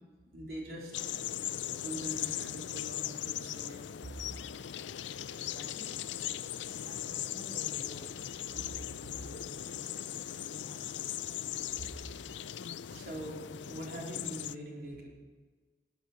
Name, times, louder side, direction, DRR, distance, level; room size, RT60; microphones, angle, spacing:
voice 1, 0.3-1.0 1.7-3.8 12.9-15.1, equal, 55° right, -2 dB, 4.0 m, -43 dB
sound 1, 0.9-14.6, left 11 dB, 90° left, 0.5 m, -39 dB
voice 2, 5.3-5.9 6.5-8.1 9.1-10.0 10.5-11.1, left 1 dB, 25° left, 0 dB, 1.9 m, -52 dB
19.5 x 8.2 x 7.4 m, 1.4 s
head